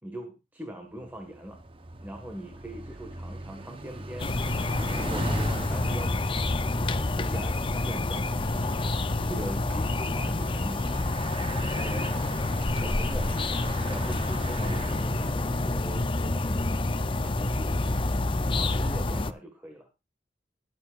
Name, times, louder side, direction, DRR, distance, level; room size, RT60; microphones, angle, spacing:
voice 1, 0.0-1.6 2.0-4.3 4.8-6.5 6.8-10.8 11.8-12.5 12.8-13.3 13.9-17.7 18.5-19.9, right 1 dB, 10° right, 3 dB, 1.8 m, -41 dB
Bicycle, 1.0-15.6, right 1 dB, 30° right, 1.0 m, -40 dB
sound 1, 4.2-19.3, left 2 dB, 30° left, 0.6 m, -28 dB
21.0 x 7.8 x 2.6 m, 0.25 s
head